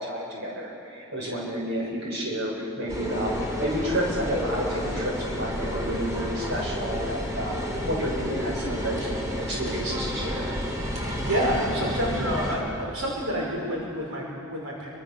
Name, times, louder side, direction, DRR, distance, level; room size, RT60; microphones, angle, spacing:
voice 1, 0.0-7.5 7.8-9.1 9.4-10.5, equal, 55° right, -2 dB, 6.8 m, -30 dB
sound 1, 2.9-12.6, equal, 15° right, 4.5 m, -31 dB
voice 2, 10.9-14.9, equal, 85° right, -3 dB, 5.6 m, -29 dB
27.5 x 24.5 x 7.1 m, 2.5 s
head